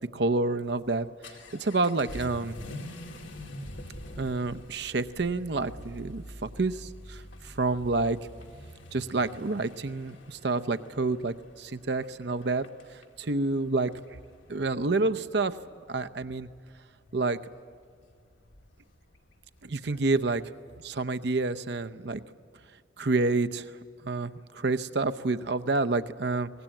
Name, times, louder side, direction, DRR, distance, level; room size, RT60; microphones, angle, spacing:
voice 1, 0.1-2.5 4.2-8.2 8.9-13.9 14.5-15.6 15.9-16.5 17.1-17.4 19.6-20.4 20.8-22.2 23.0-23.8 24.0-26.5, right 3 dB, 60° right, 10 dB, 0.7 m, -29 dB
Vehicle / Accelerating revving vroom, 0.6-20.4, left 1 dB, 90° left, 2.4 m, -47 dB
24.0 x 19.5 x 9.0 m, 2.2 s
head